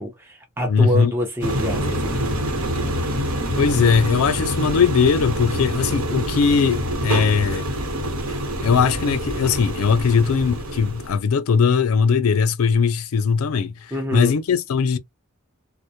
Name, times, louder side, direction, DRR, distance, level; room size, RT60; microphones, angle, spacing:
voice 1, 0.0-2.2 13.9-14.3, equal, 10° right, 0.6 m, -26 dB
voice 2, 0.7-1.1 3.6-7.7 8.6-15.0, left 6 dB, 80° left, 0.4 m, -19 dB
sound 1, 1.4-11.2, equal, 90° right, 1.0 m, -26 dB
2.2 x 2.1 x 2.7 m
head